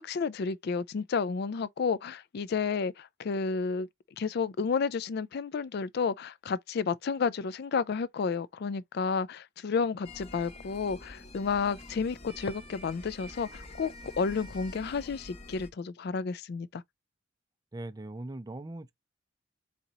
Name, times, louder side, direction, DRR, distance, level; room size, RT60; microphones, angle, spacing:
voice 1, 0.0-3.9 4.2-16.8, left 5 dB, 50° left, 0.4 m, -31 dB
sound 1, 10.0-15.7, left 1 dB, 30° left, 0.9 m, -47 dB
voice 2, 17.7-18.9, right 1 dB, 20° right, 0.4 m, -40 dB
4.2 x 3.8 x 2.8 m
head